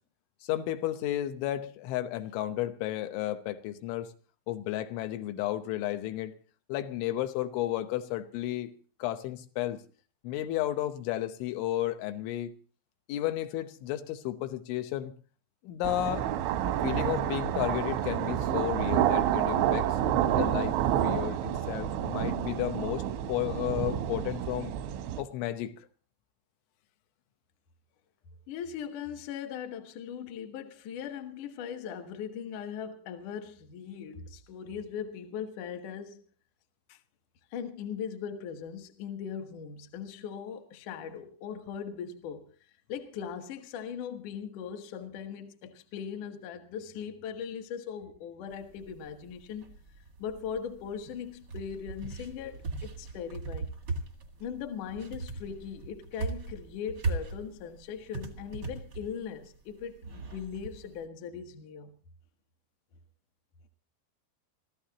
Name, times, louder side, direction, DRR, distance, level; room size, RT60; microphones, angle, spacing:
voice 1, 0.4-4.1 4.5-6.3 6.7-8.7 9.0-9.8 10.2-12.5 13.1-15.1 15.6-16.3 16.8-19.9 20.3-24.7 25.2-25.7, left 13 dB, 85° left, 3.4 m, -33 dB
sound 1, 15.8-25.2, right 11 dB, 90° right, 3.5 m, -29 dB
voice 2, 28.5-36.2 37.5-42.5 42.9-49.7 50.2-53.7 54.4-62.0, left 7 dB, 65° left, 2.1 m, -39 dB
sound 2, 48.5-61.1, right 3 dB, 65° right, 1.0 m, -39 dB
26.0 x 14.5 x 2.9 m
omnidirectional pair, 5.4 m